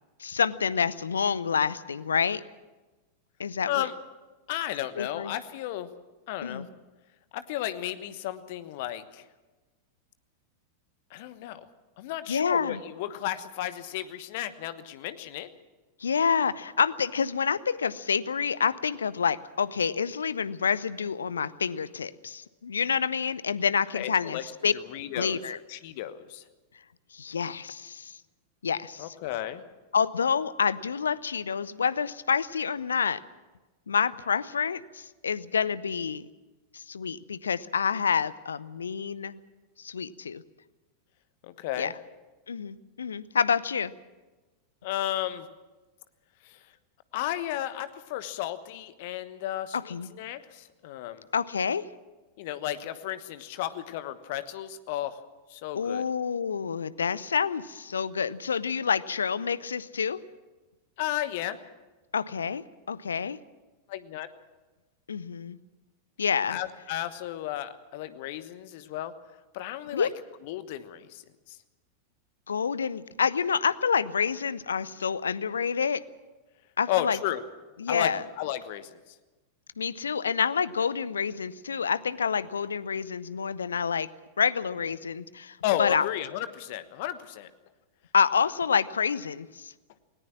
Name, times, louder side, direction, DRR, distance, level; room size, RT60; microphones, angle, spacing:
voice 1, 0.2-2.4 3.4-3.9 5.0-5.3 6.4-6.7 12.3-12.8 16.0-24.7 25.1-25.6 27.1-28.2 28.6-29.1 29.9-33.2 33.9-36.3 36.7-39.4 39.8-40.4 41.8-41.9 42.5-43.9 49.7-50.1 51.3-51.8 55.7-60.2 62.1-63.4 65.1-65.6 66.2-66.6 69.9-70.1 72.5-76.0 76.8-77.2 77.8-78.2 79.8-84.1 84.4-86.1 88.1-89.7, left 6 dB, 70° left, 19 dB, 0.7 m, -28 dB
voice 2, 4.5-5.9 6.3-6.7 7.3-9.2 11.1-11.7 12.0-15.5 23.9-24.4 24.7-25.4 25.7-26.4 29.0-29.6 41.4-41.9 44.8-45.5 46.4-46.6 47.1-51.2 52.4-55.2 55.5-56.0 61.0-61.6 63.9-64.3 66.5-69.1 69.5-70.1 70.4-71.2 71.5-71.6 76.9-77.4 77.9-79.0 85.6-87.5, left 13 dB, 50° left, 13 dB, 1.2 m, -33 dB
19.5 x 18.5 x 7.4 m, 1.2 s
figure-of-eight pair, 90°, 0 cm